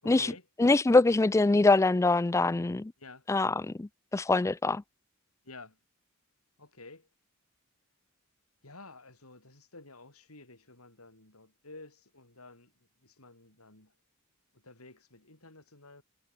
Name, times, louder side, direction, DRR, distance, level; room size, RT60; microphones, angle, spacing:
voice 1, 0.0-0.5 3.0-3.3 5.4-5.8 6.6-7.1 8.6-12.7 13.0-13.9 14.5-16.0, left 3 dB, 80° left, 7.2 m, -51 dB
voice 2, 0.6-2.9 3.3-4.8, left 3 dB, 15° left, 0.3 m, -24 dB
head